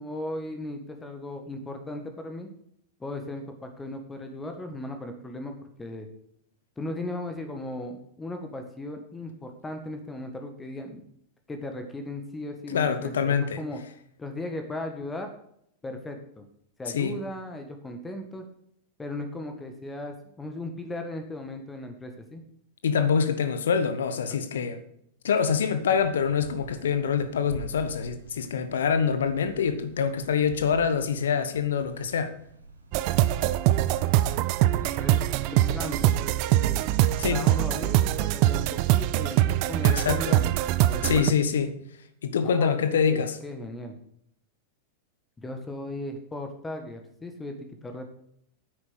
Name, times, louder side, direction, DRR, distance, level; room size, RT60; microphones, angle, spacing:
voice 1, 0.0-2.5 3.0-6.1 6.8-11.0 11.5-13.8 14.2-15.3 15.8-16.5 16.8-18.4 19.0-22.4 35.0-35.2 35.5-36.3 36.6-36.8 37.3-40.5 40.8-41.4 42.4-44.0 45.4-48.1, left 1 dB, 10° left, 1.7 m, -37 dB
voice 2, 12.7-13.6 16.9-17.2 22.8-24.8 25.2-32.3 37.2-37.4 39.8-40.4 41.0-41.8 42.2-43.4, left 6 dB, 65° left, 1.2 m, -25 dB
sound 1, 25.7-39.1, right 1 dB, 80° right, 2.1 m, -48 dB
sound 2, 32.9-41.3, right 14 dB, 45° right, 0.6 m, -23 dB
10.0 x 9.2 x 6.4 m
figure-of-eight pair, 90°, 0 cm